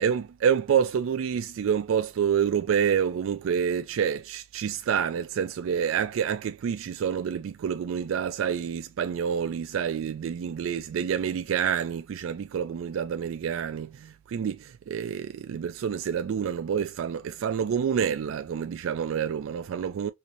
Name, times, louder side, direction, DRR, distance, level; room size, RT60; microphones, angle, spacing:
voice 1, 0.0-20.1, right 7 dB, 80° right, 0.3 m, -28 dB
4.5 x 2.7 x 2.4 m
head